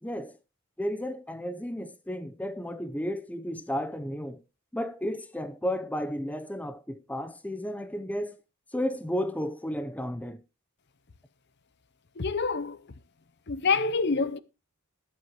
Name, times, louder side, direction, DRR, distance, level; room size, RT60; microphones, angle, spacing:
voice 1, 0.0-0.4 0.8-4.4 4.7-8.4 8.7-10.4, equal, 5° left, 0.7 m, -33 dB
voice 2, 12.2-12.8 13.5-14.4, left 4 dB, 50° left, 0.7 m, -26 dB
21.0 x 7.6 x 3.1 m
head